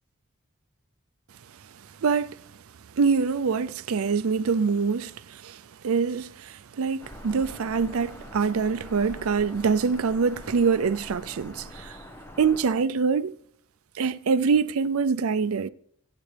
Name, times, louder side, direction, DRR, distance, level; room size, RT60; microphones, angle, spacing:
voice 1, 2.0-2.3 3.0-11.9 12.4-13.3 14.0-15.7, right 5 dB, 80° right, 0.5 m, -25 dB
Bird vocalization bird call bird song, 7.0-12.7, equal, 10° left, 1.1 m, -44 dB
24.5 x 8.3 x 3.4 m
head